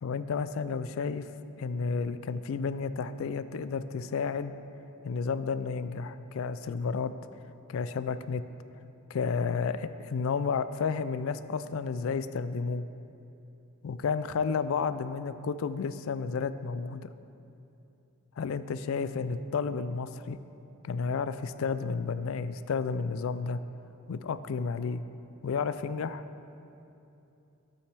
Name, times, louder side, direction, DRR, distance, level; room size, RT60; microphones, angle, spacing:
voice 1, 0.0-1.3 1.6-4.5 5.0-7.1 7.7-8.4 9.1-12.8 13.8-17.1 18.4-20.4 20.8-23.6 24.1-25.0 25.4-26.2, left 5 dB, 60° left, 13 dB, 0.3 m, -31 dB
13.0 x 8.4 x 3.4 m, 2.8 s
head